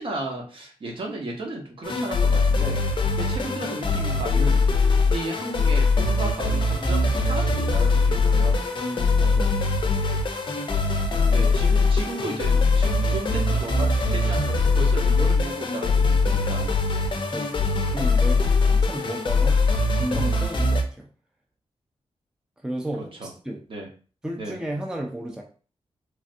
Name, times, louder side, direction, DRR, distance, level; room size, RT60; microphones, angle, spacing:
voice 1, 0.0-8.6 11.3-16.7 23.2-23.3 23.7-23.9 24.4-24.6, right 2 dB, 50° right, 1 dB, 0.9 m, -34 dB
sound 1, 1.8-20.8, left 3 dB, 45° left, 0.5 m, -22 dB
voice 2, 8.9-9.6 11.1-11.4 17.3-19.6 19.9-21.1 22.6-23.6 24.2-25.4, right 1 dB, 5° right, 0 dB, 0.4 m, -33 dB
3.2 x 2.5 x 2.5 m, 0.38 s
wide cardioid pair, 130°, 11 cm